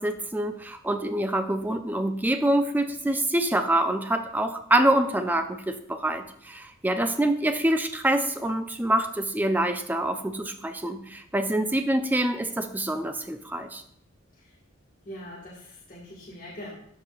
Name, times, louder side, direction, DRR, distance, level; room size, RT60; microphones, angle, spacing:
voice 1, 0.0-13.8, right 1 dB, 10° right, 6 dB, 0.4 m, -26 dB
voice 2, 15.0-16.7, left 1 dB, 40° left, -6 dB, 1.6 m, -42 dB
13.0 x 4.9 x 2.4 m, 0.67 s
head